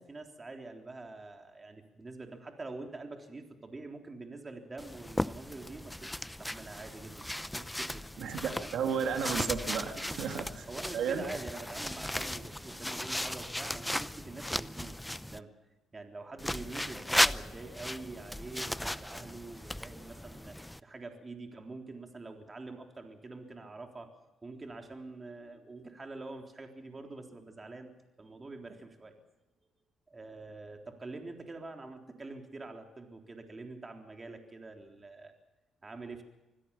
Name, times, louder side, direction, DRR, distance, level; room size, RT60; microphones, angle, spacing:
voice 1, 0.0-6.1 6.4-8.1 8.6-8.7 10.1-10.2 10.7-15.5 15.9-20.6 20.8-24.1 24.4-27.9 28.2-29.1 30.1-35.3 35.8-36.2, right 3 dB, 25° right, 4 dB, 3.7 m, -45 dB
sound 1, 4.8-15.4 16.4-20.8, left 1 dB, 5° left, 0.6 m, -36 dB
voice 2, 8.2-10.6 10.9-11.2, right 7 dB, 75° right, 4 dB, 2.9 m, -33 dB
25.0 x 16.5 x 7.2 m, 1.0 s
cardioid pair, 90°, 0 cm